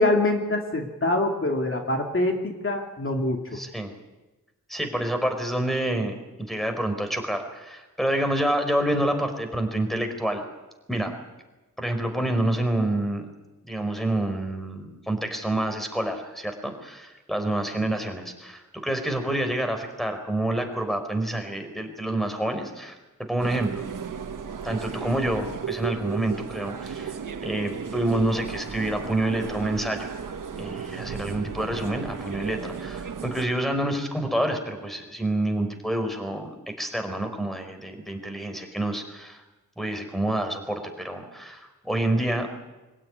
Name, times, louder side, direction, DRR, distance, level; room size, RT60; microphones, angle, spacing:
voice 1, 0.0-3.6, left 2 dB, 40° left, 2 dB, 2.5 m, -25 dB
voice 2, 3.5-3.9 4.7-10.4 10.9-11.1 11.8-13.3 13.6-23.0 23.3-23.8 24.6-30.1 30.6-39.4 39.8-42.5, right 1 dB, ahead, 6 dB, 4.4 m, -28 dB
sound 1, 23.4-33.5, right 6 dB, 85° right, 1.7 m, -35 dB
24.5 x 16.5 x 9.5 m, 1.1 s
wide cardioid pair, 85°, 31 cm